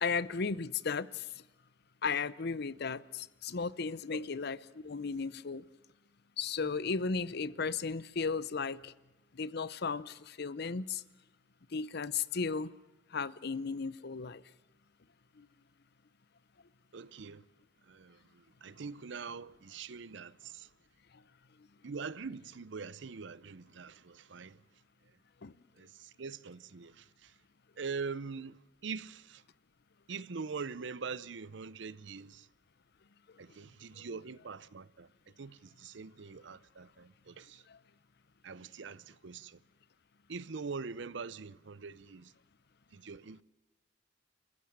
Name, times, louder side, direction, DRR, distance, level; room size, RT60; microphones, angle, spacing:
voice 1, 0.0-1.3 2.0-4.6 4.8-5.6 6.4-8.9 9.3-11.0 11.7-12.7 13.1-14.4 15.4-15.5 25.4-25.5 37.7-37.8, left 5 dB, 60° left, 0.7 m, -35 dB
voice 2, 16.9-17.4 17.8-20.7 21.8-24.6 25.8-27.4 27.8-29.4 30.1-32.5 33.4-35.1 35.4-37.7 38.4-39.6 40.3-42.3 42.9-43.4, right 5 dB, 70° right, 0.7 m, -43 dB
28.0 x 14.5 x 7.3 m
head